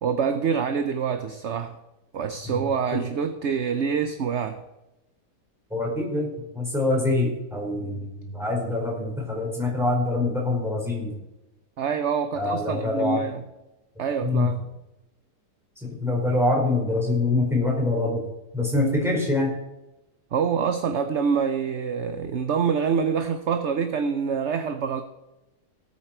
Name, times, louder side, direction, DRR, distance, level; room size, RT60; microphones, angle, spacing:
voice 1, 0.0-1.8 2.1-4.6 11.8-13.4 14.0-14.6 20.3-25.0, right 6 dB, 55° right, 8 dB, 0.9 m, -26 dB
voice 2, 5.7-11.1 12.3-13.2 14.2-14.5 15.8-18.2 18.5-19.5, left 2 dB, ahead, -3 dB, 4.5 m, -25 dB
18.0 x 8.6 x 4.5 m, 0.95 s
omnidirectional pair, 1.8 m